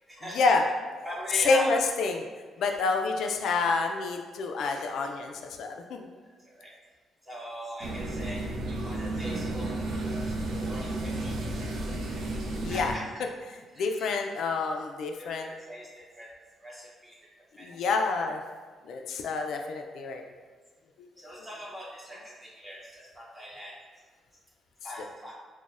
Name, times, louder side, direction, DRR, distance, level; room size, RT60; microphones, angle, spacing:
voice 1, 0.1-0.5 1.0-1.7 2.6-2.7 6.4-6.7 7.2-10.2 10.6-11.4 12.7-13.1 13.7-14.1 15.2-16.3 16.6-17.2 17.6-17.7 21.2-23.7 24.8-25.3, equal, 10° right, -6 dB, 0.7 m, -40 dB
voice 2, 1.5-2.2 2.6-6.1 12.6-12.9 13.8-15.5 17.6-18.4 18.9-20.2, left 4 dB, 60° left, 3 dB, 0.3 m, -28 dB
sound 1, 7.8-13.0, right 2 dB, 75° right, 0.6 m, -32 dB
5.9 x 2.1 x 2.4 m, 1.4 s
cardioid pair, 175°, 0 cm